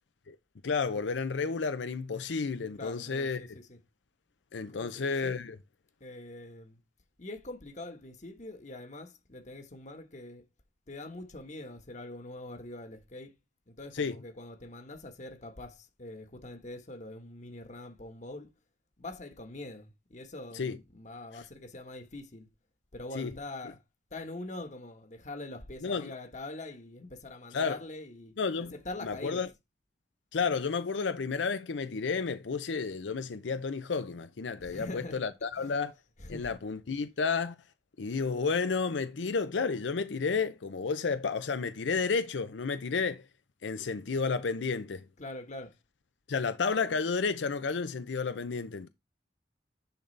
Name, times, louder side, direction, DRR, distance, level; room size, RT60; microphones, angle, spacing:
voice 1, 0.6-3.4 4.5-5.6 13.9-14.2 20.5-20.8 21.3-21.5 23.2-23.3 25.8-26.1 27.5-27.8 28.4-28.7 29.0-29.5 30.3-35.9 36.3-37.6 38.0-43.2 43.6-45.0 46.3-48.9, left 5 dB, 85° left, 0.6 m, -31 dB
voice 2, 2.8-3.8 4.7-5.4 6.0-6.8 7.2-10.4 10.9-13.3 13.7-18.5 19.0-22.5 22.9-23.8 24.1-28.3 28.7-29.4 34.6-35.2 36.2-36.5 45.2-45.7, left 2 dB, 40° left, 1.4 m, -43 dB
10.5 x 4.0 x 3.3 m
head